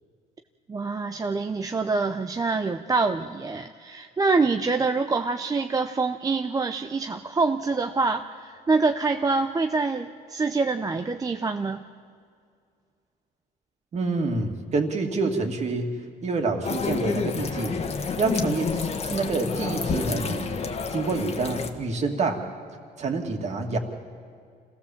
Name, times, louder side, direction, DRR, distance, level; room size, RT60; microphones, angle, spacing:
voice 1, 0.7-11.8, right 4 dB, 20° right, 7 dB, 0.6 m, -25 dB
voice 2, 13.9-16.0 16.2-17.8 18.2-20.5 20.9-22.4 23.0-23.8, right 3 dB, 40° right, 3 dB, 2.5 m, -27 dB
sound 1, 16.6-21.7, left 5 dB, 40° left, 1.6 m, -29 dB
26.5 x 16.5 x 7.3 m, 2.2 s
cardioid pair, 110°, 17 cm